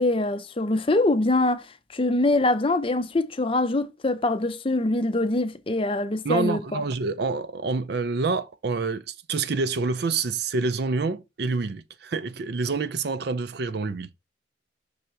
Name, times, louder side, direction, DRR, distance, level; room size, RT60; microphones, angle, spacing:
voice 1, 0.0-1.6 1.9-6.8, left 2 dB, 30° left, 0.5 m, -24 dB
voice 2, 6.2-14.2, right 4 dB, 55° right, 0.5 m, -27 dB
5.6 x 3.8 x 4.4 m
head